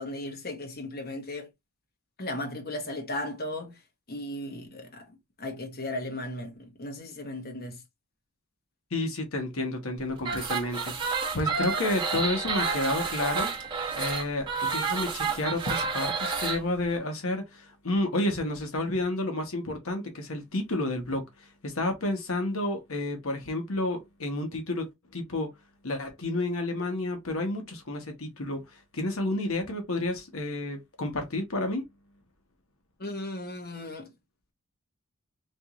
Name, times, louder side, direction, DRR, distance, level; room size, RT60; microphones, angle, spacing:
voice 1, 0.0-1.5 2.2-3.8 4.1-7.8 33.0-34.1, left 1 dB, 45° left, 1.0 m, -36 dB
voice 2, 8.9-13.5 13.9-24.9 25.1-25.5 25.8-31.8, left 2 dB, 75° left, 1.1 m, -30 dB
sound 1, 10.2-16.6, right 5 dB, 20° right, 1.2 m, -30 dB
4.6 x 2.9 x 2.4 m
head